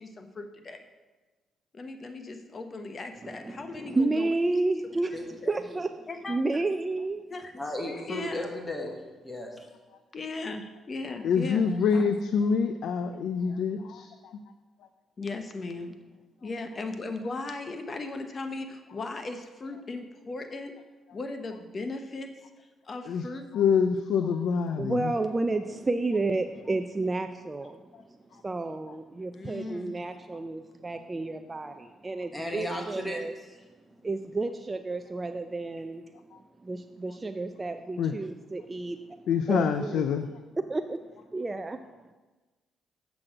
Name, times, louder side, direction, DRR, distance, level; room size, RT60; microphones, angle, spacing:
voice 1, 0.2-0.8 1.8-4.3 6.1-6.4 7.3-7.4 7.9-8.5 10.1-11.6 11.9-12.1 15.2-15.9 16.4-18.7 18.9-20.7 21.1-22.3 22.9-23.5 29.3-30.0, left 3 dB, 35° left, 7 dB, 0.8 m, -37 dB
voice 2, 3.2-5.1 5.5-5.9 6.3-7.3 24.8-27.8 28.4-33.3 34.0-36.0 36.6-39.2 39.5-40.0 40.7-41.0 41.3-41.8, right 2 dB, 25° right, 7 dB, 0.4 m, -31 dB
voice 3, 7.6-8.9 9.2-9.7 32.3-33.6, left 1 dB, 15° left, 2 dB, 1.2 m, -35 dB
voice 4, 11.2-14.4 23.1-23.3 23.5-25.1 27.9-28.0 28.3-28.4 28.9-29.0 36.3-36.4 38.0-38.1 39.3-40.3, left 6 dB, 75° left, 8 dB, 0.4 m, -26 dB
7.6 x 6.0 x 4.9 m, 1.2 s
cardioid pair, 90°, 0 cm